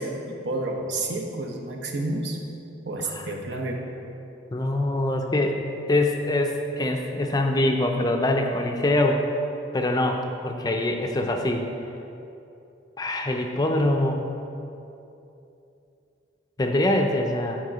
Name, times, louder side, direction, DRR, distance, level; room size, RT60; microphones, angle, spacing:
voice 1, 0.0-2.4 2.8-3.8, right 2 dB, 65° right, 2 dB, 0.9 m, -30 dB
voice 2, 4.5-5.6 5.9-9.3 9.7-11.7 13.0-14.2 16.6-17.6, left 1 dB, 20° left, 3 dB, 0.4 m, -24 dB
9.4 x 4.2 x 5.0 m, 2.8 s
head